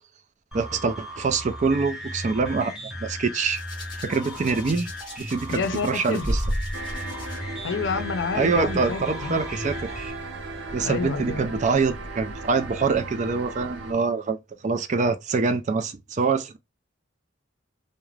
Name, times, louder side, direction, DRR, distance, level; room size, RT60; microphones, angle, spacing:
sound 1, 0.5-10.1, equal, 5° right, 0.8 m, -37 dB
voice 1, 0.5-2.7 3.0-3.6 4.0-4.9 5.2-6.4 8.3-9.9 10.7-14.4 14.6-16.6, right 4 dB, 40° right, 0.4 m, -25 dB
Hands, 3.5-7.4 8.4-8.6, equal, 25° left, 1.0 m, -33 dB
voice 2, 5.5-6.3 7.6-9.4 10.8-11.5, left 4 dB, 65° left, 0.5 m, -29 dB
sound 2, 6.7-13.9, right 2 dB, 85° right, 0.6 m, -36 dB
2.4 x 2.1 x 3.1 m
head